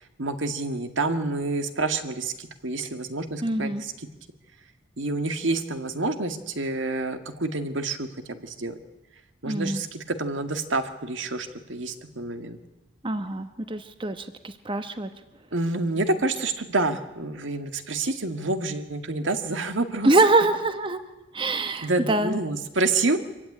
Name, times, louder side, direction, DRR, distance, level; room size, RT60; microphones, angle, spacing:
voice 1, 0.2-3.9 5.0-8.8 9.4-12.6 15.5-20.1 21.8-23.2, right 2 dB, 75° right, 8 dB, 1.9 m, -28 dB
voice 2, 3.4-3.8 9.4-9.8 13.0-15.1 20.0-21.0 21.3-22.4, right 2 dB, 25° right, 9 dB, 1.1 m, -24 dB
25.0 x 15.5 x 9.9 m, 1.0 s
head